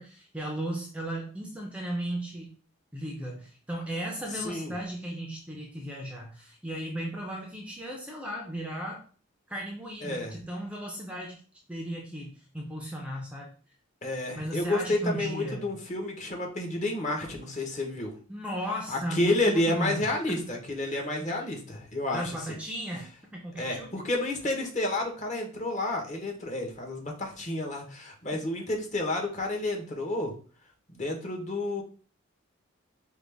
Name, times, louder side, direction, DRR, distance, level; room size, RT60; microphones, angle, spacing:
voice 1, 0.0-2.5 2.9-9.0 9.5-11.4 11.7-13.5 14.3-15.8 18.3-20.4 20.9-21.0 22.1-24.0, right 1 dB, 5° right, -1 dB, 0.5 m, -36 dB
voice 2, 10.0-10.3 14.0-18.1 18.9-22.4 23.6-30.3 30.9-31.8, left 2 dB, 35° left, 1 dB, 1.0 m, -30 dB
5.0 x 2.3 x 3.4 m, 0.40 s
head